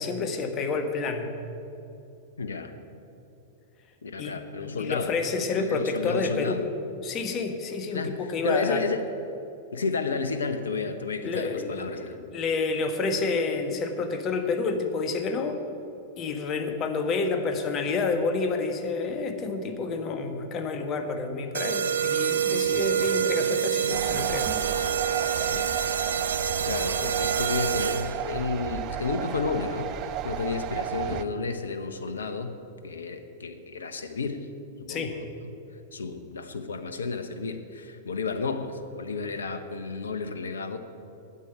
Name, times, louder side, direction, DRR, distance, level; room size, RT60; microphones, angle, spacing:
voice 1, 0.0-1.3 4.2-4.4 4.7-6.7 7.0-8.9 11.2-15.6 16.2-24.5 34.9-35.1, left 4 dB, 35° left, 6 dB, 1.4 m, -29 dB
voice 2, 2.4-2.7 4.0-6.6 7.9-9.0 9.7-12.2 25.5-25.8 26.6-32.6 32.8-34.5 34.8-35.3 35.9-40.8, left 4 dB, 80° left, 9 dB, 0.9 m, -32 dB
sound 1, 21.5-28.3, right 8 dB, 75° right, 0.7 m, -27 dB
sound 2, 23.9-31.2, right 10 dB, 40° right, 0.6 m, -33 dB
9.6 x 8.7 x 9.3 m, 2.8 s
figure-of-eight pair, 100°, 0 cm